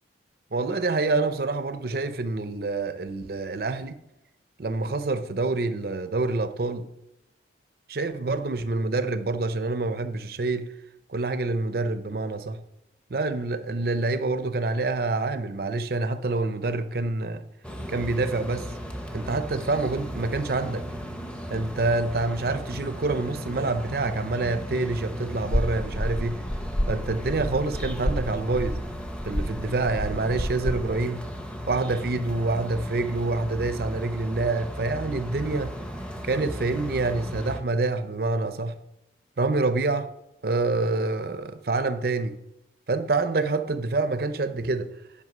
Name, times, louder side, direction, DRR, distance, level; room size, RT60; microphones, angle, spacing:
voice 1, 0.5-4.0 4.6-6.9 7.9-10.7 11.1-12.6 13.1-17.4 17.9-18.7 19.1-20.9 21.5-26.4 26.9-28.8 29.2-31.2 31.7-35.7 36.2-38.7 39.4-40.1 40.4-42.4 42.9-44.9, right 3 dB, 55° right, 0.6 m, -27 dB
sound 1, 17.6-37.6, equal, 5° left, 0.8 m, -36 dB
sound 2, 25.5-30.8, equal, 55° left, 1.0 m, -30 dB
9.4 x 5.7 x 6.0 m
head